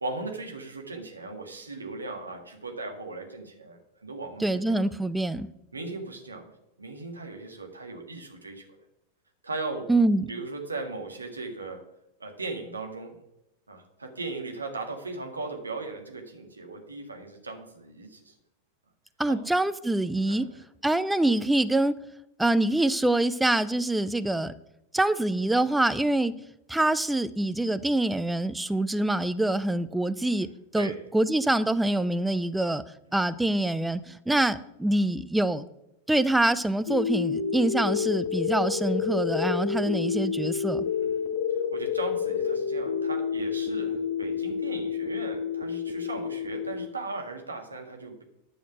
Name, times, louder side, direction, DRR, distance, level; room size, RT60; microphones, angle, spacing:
voice 1, 0.0-4.9 5.7-6.5 6.8-8.7 9.4-9.9 10.3-11.8 12.2-13.2 13.7-18.3 19.3-19.5 20.3-20.6 30.4-30.5 30.7-31.0 41.0-41.2 41.5-48.2, right 3 dB, 80° right, 1.9 m, -38 dB
voice 2, 4.4-5.5 9.9-10.3 19.2-20.5 20.8-21.9 22.4-24.5 24.9-26.4 26.7-30.5 30.7-32.8 33.1-35.6 36.1-40.8, right 1 dB, 5° right, 0.5 m, -25 dB
sound 1, 36.9-46.9, left 6 dB, 55° left, 1.3 m, -29 dB
11.0 x 6.6 x 6.0 m
figure-of-eight pair, 90°, 0 cm